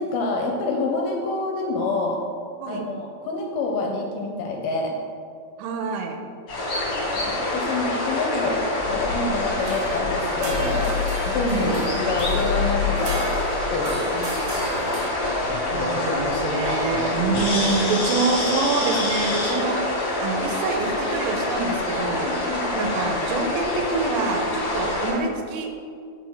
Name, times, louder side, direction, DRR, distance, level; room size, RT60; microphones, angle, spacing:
voice 1, 0.0-2.2 2.7-5.0 7.3-10.9 11.3-13.3 13.7-14.1 14.4-15.0 22.1-22.9, left 3 dB, 80° left, 1 dB, 2.3 m, -27 dB
voice 2, 5.6-6.2 11.5-11.9 14.1-14.4 15.7-19.8 20.2-22.3 22.7-25.7, right 4 dB, 85° right, 4 dB, 2.8 m, -26 dB
sound 1, 6.5-25.1, left 2 dB, 45° left, 2.0 m, -25 dB
sound 2, 9.6-15.0, right 3 dB, 70° right, 1.6 m, -36 dB
7.0 x 4.4 x 6.3 m, 2.3 s
omnidirectional pair, 4.9 m